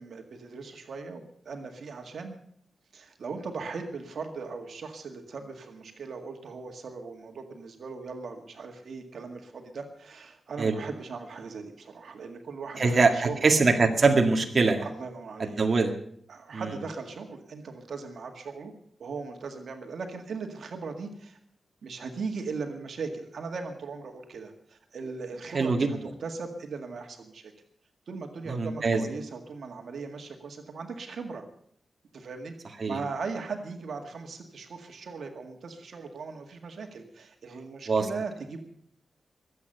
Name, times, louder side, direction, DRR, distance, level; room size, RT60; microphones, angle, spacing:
voice 1, 0.0-2.4 2.9-13.5 14.8-15.7 16.3-18.7 19.0-21.4 21.8-27.5 28.1-31.4 32.1-32.5 32.9-38.6, right 4 dB, 75° right, 4 dB, 1.9 m, -39 dB
voice 2, 12.8-14.8 15.4-15.9 16.5-16.7 25.5-25.9 28.5-29.0 32.8-33.0 37.9-38.1, right 4 dB, 45° right, 3 dB, 1.9 m, -23 dB
22.5 x 8.5 x 6.7 m, 0.64 s
wide cardioid pair, 105°, 0 cm